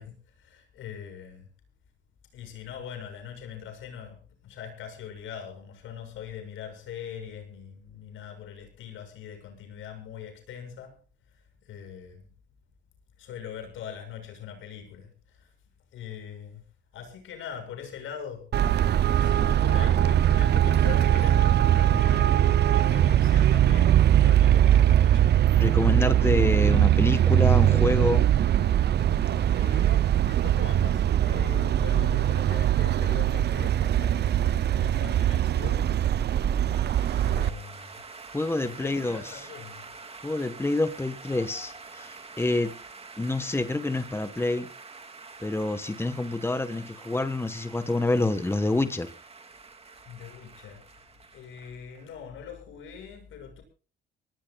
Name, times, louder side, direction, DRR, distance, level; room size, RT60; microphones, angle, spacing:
voice 1, 0.0-1.5 2.3-11.0 11.3-12.3 13.2-15.5 15.9-16.6 16.9-18.5 19.2-25.4 29.5-36.0 37.2-38.0 38.6-39.9 50.1-50.8 51.3-53.6, left 8 dB, 85° left, 7.1 m, -42 dB
Traffic noise roadway noise, 18.5-37.5, right 11 dB, 55° right, 0.7 m, -21 dB
voice 2, 25.5-28.3 38.3-39.4 40.2-42.8 43.2-44.7 45.4-49.1, left 2 dB, 10° left, 1.4 m, -27 dB
sound 1, 36.6-52.1, right 4 dB, 30° right, 2.6 m, -46 dB
25.5 x 18.5 x 2.5 m
cardioid pair, 90°, 20 cm